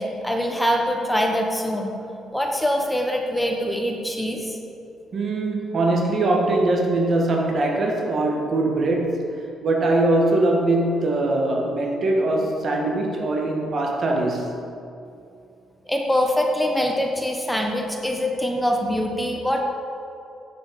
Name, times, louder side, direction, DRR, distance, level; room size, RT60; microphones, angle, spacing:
voice 1, 0.0-1.9 2.3-4.6 15.9-19.6, equal, 5° left, 1.1 m, -24 dB
voice 2, 5.1-9.4 9.6-14.6, right 2 dB, 50° right, 1.9 m, -22 dB
9.1 x 7.6 x 7.1 m
cardioid pair, 90°, 0 cm